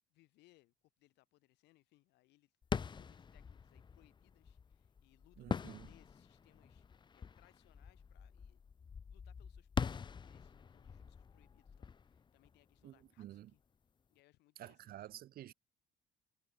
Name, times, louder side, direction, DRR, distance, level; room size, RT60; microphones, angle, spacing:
voice 1, 0.1-2.5 2.9-8.6 9.1-13.6 14.1-15.1, left 19 dB, 85° left, 4.9 m, -71 dB
sound 1, 2.6-13.2, left 6 dB, 25° left, 0.7 m, -44 dB
voice 2, 5.4-5.9 12.8-13.5 14.6-15.5, right 13 dB, 65° right, 1.2 m, -51 dB
cardioid pair, 110°, 17 cm